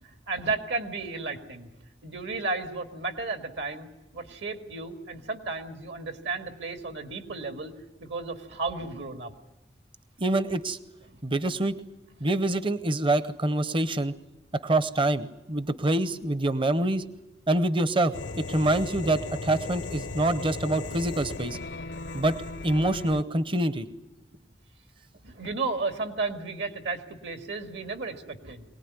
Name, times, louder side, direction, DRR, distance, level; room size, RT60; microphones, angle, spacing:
voice 1, 0.0-1.7 2.0-3.9 4.1-7.7 8.0-9.3 25.2-28.6, right 3 dB, 75° right, 5 dB, 2.2 m, -33 dB
voice 2, 10.2-10.8 11.2-11.8 12.2-14.1 14.6-17.0 17.5-21.6 22.1-22.4 22.6-23.9, right 1 dB, 30° right, 13 dB, 0.7 m, -26 dB
sound 1, 18.1-23.2, left 3 dB, 80° left, 0.8 m, -37 dB
23.0 x 19.0 x 9.6 m, 1.0 s
head